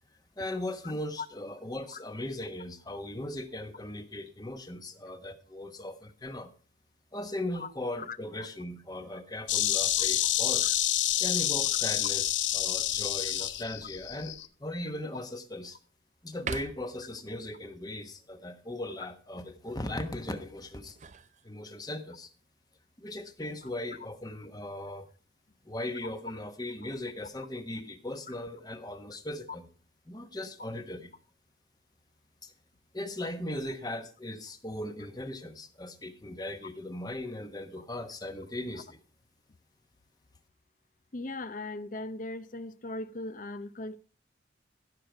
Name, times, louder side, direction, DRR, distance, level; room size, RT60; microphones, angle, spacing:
voice 1, 0.4-6.5 7.1-10.7 11.2-12.2 12.5-15.8 16.2-21.0 21.4-22.3 23.0-25.1 25.6-29.7 30.1-31.1 32.4-32.5 32.9-39.0, left 1 dB, 20° left, 1.2 m, -38 dB
Insect, 9.5-14.5, left 12 dB, 85° left, 0.7 m, -28 dB
sound 1, 13.3-13.8 14.4-14.5 15.0-15.8 16.3-17.1 20.6-22.0 23.3-23.9, right 5 dB, 40° right, 0.5 m, -43 dB
voice 2, 41.1-44.0, left 2 dB, 45° left, 0.8 m, -38 dB
15.5 x 6.6 x 4.5 m
head